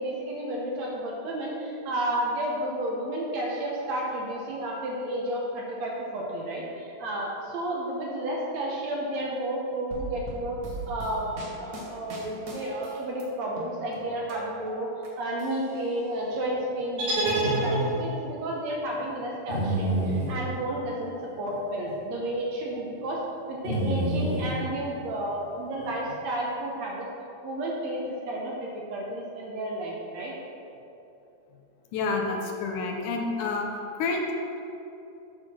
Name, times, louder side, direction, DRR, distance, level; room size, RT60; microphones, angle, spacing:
voice 1, 0.0-10.6 10.9-11.3 11.6-14.9 15.2-23.2 23.5-27.1 27.4-30.3, right 1 dB, 70° right, -2 dB, 1.8 m, -31 dB
sound 1, 9.9-13.2 13.6-15.1 15.4-16.3, right 1 dB, 90° right, 0.8 m, -40 dB
sound 2, 17.0-18.3, right 2 dB, 45° right, 2.6 m, -27 dB
sound 3, 17.4-17.9 19.5-20.3 21.5-21.6 21.9-22.0 23.6-24.5 25.8-26.1, right 1 dB, 20° left, 1.4 m, -28 dB
voice 2, 31.9-33.7 34.0-34.3, left 3 dB, 80° left, 2 dB, 2.2 m, -28 dB
7.6 x 4.2 x 6.1 m, 2.8 s
omnidirectional pair, 3.7 m